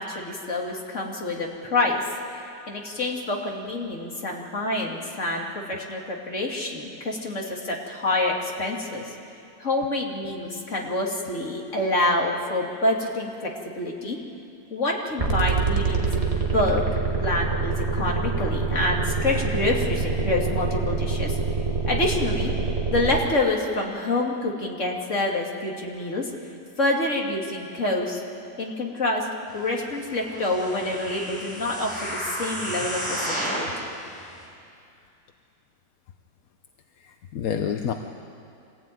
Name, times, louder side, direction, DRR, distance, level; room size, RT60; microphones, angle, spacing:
voice 1, 0.0-2.0 2.7-9.1 9.6-14.2 14.7-16.8 17.2-21.4 21.9-22.5 22.9-26.3 26.8-28.2 28.6-29.3 29.5-33.9, left 2 dB, 40° left, -1 dB, 2.8 m, -27 dB
sound 1, 15.2-23.2, right 4 dB, 20° right, 2.0 m, -25 dB
sound 2, 30.2-33.8 34.4-34.5, equal, 15° left, 5.4 m, -32 dB
voice 2, 37.0-37.9, left 8 dB, 60° left, 6 dB, 1.2 m, -29 dB
25.5 x 16.5 x 9.3 m, 2.5 s
omnidirectional pair, 2.0 m